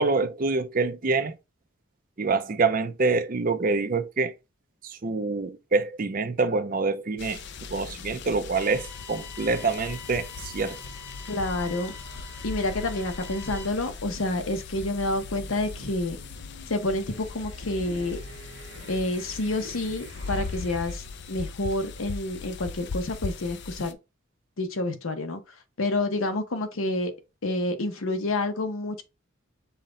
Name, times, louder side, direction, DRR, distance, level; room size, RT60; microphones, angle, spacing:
voice 1, 0.0-1.3 2.2-4.3 4.8-7.4 7.7-10.8, right 3 dB, 40° right, 0.5 m, -26 dB
sound 1, 7.2-23.9, left 4 dB, 55° left, 0.5 m, -39 dB
sound 2, 8.5-13.6, left 5 dB, 30° left, 1.0 m, -45 dB
sound 3, 10.8-21.0, right 1 dB, 85° right, 1.1 m, -48 dB
voice 2, 11.3-11.9 12.4-16.2 16.7-18.2 18.9-24.0 24.6-25.4 25.8-27.1 27.4-29.0, left 2 dB, 75° left, 0.8 m, -28 dB
5.7 x 2.3 x 3.8 m
head